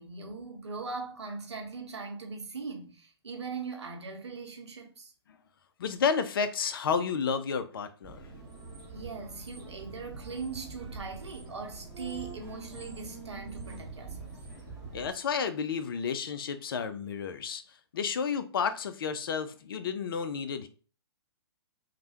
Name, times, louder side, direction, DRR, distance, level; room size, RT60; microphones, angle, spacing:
voice 1, 0.0-5.1 8.9-14.4, right 4 dB, 75° right, 0.8 m, -40 dB
voice 2, 5.8-8.2 14.9-20.7, left 6 dB, 55° left, 0.4 m, -31 dB
sound 1, 8.0-15.1, right 4 dB, 20° right, 0.8 m, -44 dB
3.2 x 2.1 x 2.8 m
figure-of-eight pair, 120°, 14 cm